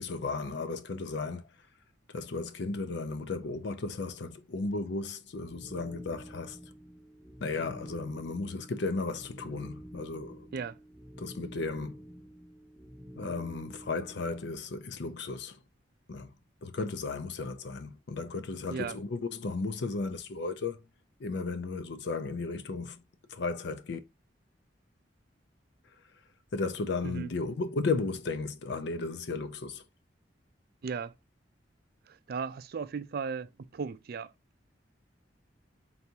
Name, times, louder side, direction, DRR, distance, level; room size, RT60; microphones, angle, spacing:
voice 1, 0.0-1.5 2.1-6.6 7.4-10.5 11.2-12.0 13.2-15.6 16.1-16.3 16.6-20.8 21.2-23.0 23.3-24.0 26.5-29.8, left 3 dB, 65° left, 0.5 m, -35 dB
sound 1, 5.3-14.6, equal, 5° right, 0.5 m, -49 dB
voice 2, 30.8-31.1 32.1-34.3, right 5 dB, 55° right, 0.4 m, -36 dB
4.0 x 3.4 x 2.7 m
head